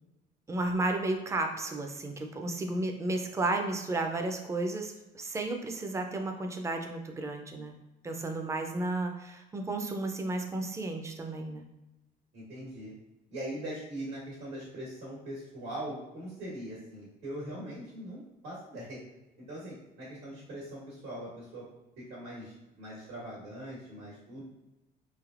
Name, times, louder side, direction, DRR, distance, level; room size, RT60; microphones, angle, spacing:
voice 1, 0.5-7.7 8.0-11.6, right 2 dB, 15° right, 4 dB, 0.4 m, -33 dB
voice 2, 12.3-12.9 13.3-19.0 19.4-21.6 22.0-24.4, right 1 dB, 85° right, -7 dB, 1.3 m, -41 dB
3.2 x 2.7 x 2.4 m, 0.97 s
cardioid pair, 110°, 17 cm